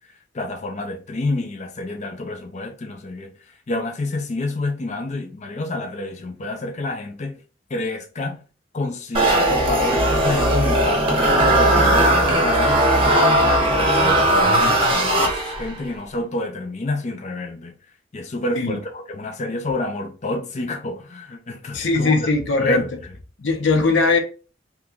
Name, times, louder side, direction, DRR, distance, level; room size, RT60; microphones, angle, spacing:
voice 1, 0.3-3.3 3.7-7.4 7.7-8.4 8.7-13.1 13.4-17.7 18.1-22.3 22.6-22.9, left 2 dB, 40° left, 0.5 m, -28 dB
sound 1, 9.1-15.8, right 1 dB, 30° right, 0.8 m, -18 dB
voice 2, 21.7-22.8 23.4-24.2, left 3 dB, 75° left, 0.7 m, -19 dB
2.9 x 2.3 x 3.6 m
head